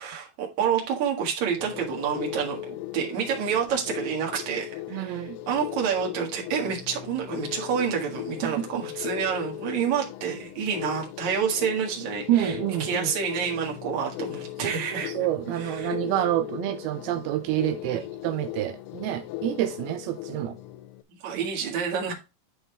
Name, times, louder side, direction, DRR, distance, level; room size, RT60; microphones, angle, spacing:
voice 1, 0.0-15.1 15.5-15.9 17.8-18.1 21.2-22.1, right 7 dB, 55° right, 2.8 m, -28 dB
sound 1, 1.6-21.0, left 15 dB, 85° left, 2.6 m, -38 dB
voice 2, 4.9-5.4 8.4-8.7 12.3-13.1 14.6-20.6, right 13 dB, 85° right, 2.5 m, -28 dB
11.0 x 4.2 x 3.3 m
omnidirectional pair, 4.5 m